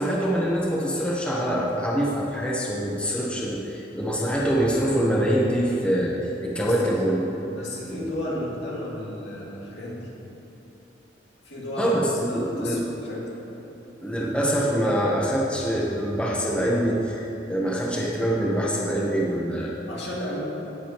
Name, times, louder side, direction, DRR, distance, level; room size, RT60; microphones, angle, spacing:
voice 1, 0.0-7.3 7.9-8.4 11.8-12.8 14.0-19.8, equal, 5° left, -4 dB, 0.9 m, -25 dB
voice 2, 7.6-10.1 11.5-12.0 12.3-13.4 19.9-20.4, left 1 dB, 70° left, -5 dB, 2.2 m, -33 dB
17.5 x 7.1 x 3.0 m, 3.0 s
head